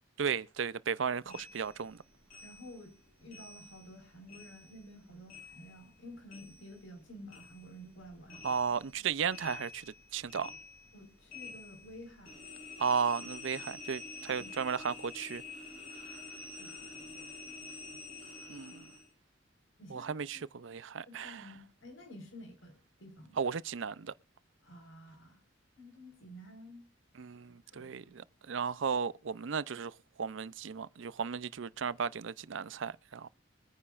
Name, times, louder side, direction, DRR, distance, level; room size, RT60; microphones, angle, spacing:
voice 1, 0.2-2.0 8.4-9.8 10.1-10.5 12.8-15.4 18.5-18.9 19.9-21.5 23.4-24.1 27.2-29.9 30.2-33.3, right 6 dB, 75° right, 0.5 m, -35 dB
sound 1, 1.3-4.0 4.3-7.0 7.3-19.1, left 4 dB, 45° left, 6.3 m, -49 dB
voice 2, 2.4-2.9 3.2-8.5 10.9-12.4 14.4-14.5 16.5-17.3 19.8-20.5 21.1-23.4 24.6-25.4 25.8-26.8 27.4-28.2, equal, 85° left, 4.7 m, -51 dB
23.0 x 9.8 x 2.5 m
head